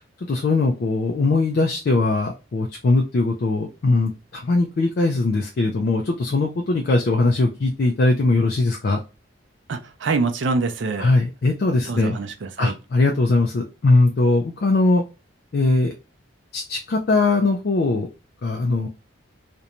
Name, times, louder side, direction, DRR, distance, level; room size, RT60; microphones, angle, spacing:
voice 1, 0.3-9.0 11.0-12.2 12.6-15.0 15.5-15.9 16.5-18.1 18.4-18.9, left 2 dB, 50° left, 0.4 m, -20 dB
voice 2, 9.7-11.1 11.8-12.7, right 3 dB, 65° right, 0.4 m, -25 dB
2.5 x 2.2 x 2.9 m
head